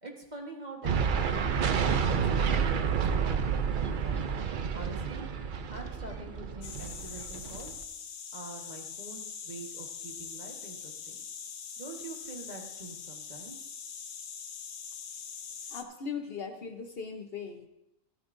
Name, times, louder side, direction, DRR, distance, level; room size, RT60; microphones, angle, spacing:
voice 1, 0.0-4.3 4.7-5.3 5.7-7.7 8.3-11.2 11.8-13.7, right 2 dB, 35° right, 1 dB, 1.5 m, -45 dB
sound 1, 0.8-7.8, right 6 dB, 55° right, 0.6 m, -29 dB
sound 2, 6.6-15.8, left 7 dB, 80° left, 1.2 m, -43 dB
voice 2, 15.6-17.7, left 6 dB, 50° left, 4 dB, 1.0 m, -39 dB
13.5 x 12.5 x 2.6 m, 0.87 s
omnidirectional pair, 1.3 m